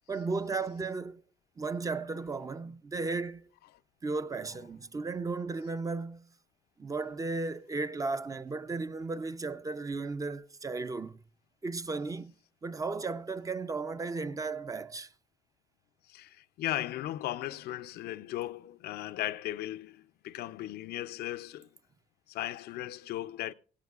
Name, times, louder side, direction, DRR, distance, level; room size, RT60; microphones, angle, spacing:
voice 1, 0.1-1.2 1.6-3.5 4.0-6.3 6.8-11.2 11.6-12.3 12.6-15.1, right 3 dB, 20° right, 0.5 m, -35 dB
voice 2, 16.1-21.7 22.3-23.5, left 14 dB, 70° left, 0.5 m, -37 dB
17.0 x 17.0 x 2.4 m
cardioid pair, 110°, 17 cm